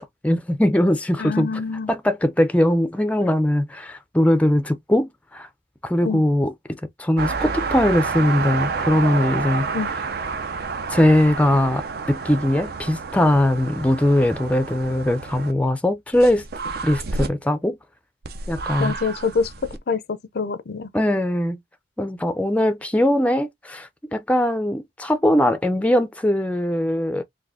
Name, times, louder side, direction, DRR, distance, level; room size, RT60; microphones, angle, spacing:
voice 1, 0.2-1.5 1.9-5.5 5.8-9.7 10.9-16.5 16.8-17.8 18.5-18.9 20.9-21.6 22.0-27.2, left 1 dB, 10° left, 0.4 m, -20 dB
voice 2, 1.2-1.9 6.0-6.2 9.7-9.9 18.8-19.5 19.9-20.9, left 4 dB, 60° left, 0.5 m, -25 dB
sound 1, 7.2-15.5 16.1-17.3 18.2-19.8, right 4 dB, 55° right, 0.6 m, -29 dB
4.1 x 2.6 x 2.6 m
head